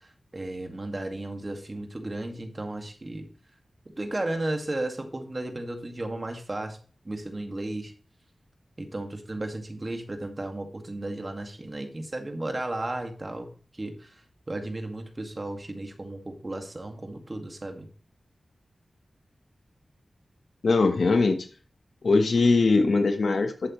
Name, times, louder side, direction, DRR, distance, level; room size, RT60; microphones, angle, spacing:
voice 1, 0.0-3.3 4.0-6.8 7.0-7.9 8.8-14.2 14.5-17.9, right 2 dB, 35° right, 5 dB, 1.9 m, -34 dB
voice 2, 20.6-21.5 22.0-23.7, left 3 dB, 70° left, 7 dB, 1.2 m, -21 dB
11.0 x 8.2 x 3.1 m, 0.39 s
wide cardioid pair, 65°, 0 cm